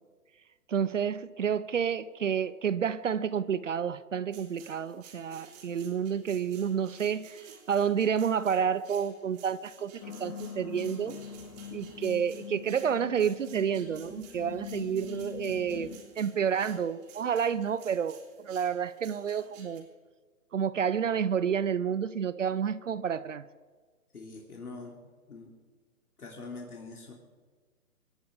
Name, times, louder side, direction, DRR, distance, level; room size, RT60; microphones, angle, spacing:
voice 1, 0.7-7.4 7.7-11.2 11.7-19.8 20.5-23.5, right 7 dB, 55° right, 15 dB, 0.8 m, -30 dB
sound 1, 4.3-19.8, right 7 dB, 25° right, 3.1 m, -54 dB
sound 2, 10.0-16.0, left 8 dB, 20° left, 1.4 m, -43 dB
voice 2, 24.1-25.0 25.3-25.5 26.2-27.1, left 3 dB, 75° left, 0 dB, 3.3 m, -43 dB
25.0 x 10.5 x 5.2 m, 1.4 s
figure-of-eight pair, 140°, 45 cm